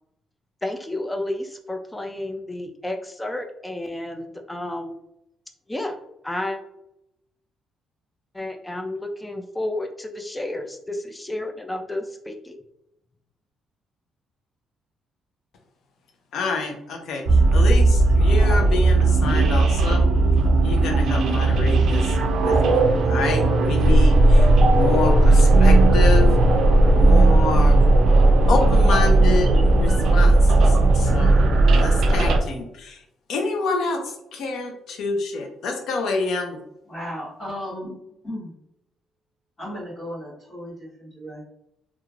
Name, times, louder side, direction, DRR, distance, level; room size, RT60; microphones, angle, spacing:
voice 1, 0.6-5.0 5.7-6.0 6.2-6.6 8.3-12.6, left 1 dB, 10° left, 4 dB, 0.3 m, -31 dB
voice 2, 16.3-20.0 20.6-22.8 23.1-26.3 26.9-27.8 28.5-31.5 31.8-33.0 33.3-36.6, left 3 dB, 65° left, 4 dB, 0.6 m, -28 dB
sound 1, 17.3-32.4, right 2 dB, 65° right, 0.4 m, -16 dB
voice 3, 36.9-37.9 38.2-38.6 39.6-41.4, equal, 25° left, -11 dB, 1.3 m, -35 dB
3.1 x 2.4 x 2.4 m, 0.82 s
cardioid pair, 130°, 0 cm